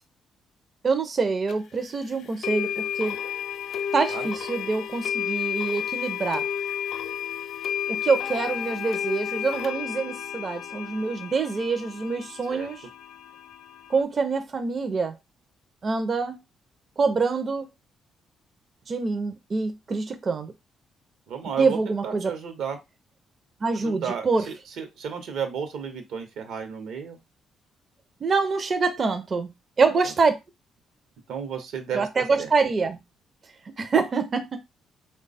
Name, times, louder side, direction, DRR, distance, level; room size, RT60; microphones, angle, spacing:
voice 1, 0.8-3.2 3.9-6.4 7.9-12.8 13.9-15.2 15.8-16.4 17.0-17.7 18.9-20.5 21.6-22.3 23.6-24.5 28.2-29.5 29.8-30.3 31.9-33.0 33.8-34.6, right 4 dB, 40° right, 0.5 m, -25 dB
sound 1, 1.5-1.6 2.4-14.0, left 9 dB, 70° left, 0.5 m, -32 dB
voice 2, 21.3-22.8 23.8-27.2 31.3-32.1 32.4-32.5, right 7 dB, 80° right, 0.8 m, -33 dB
3.2 x 2.2 x 4.0 m
cardioid pair, 90°, 0 cm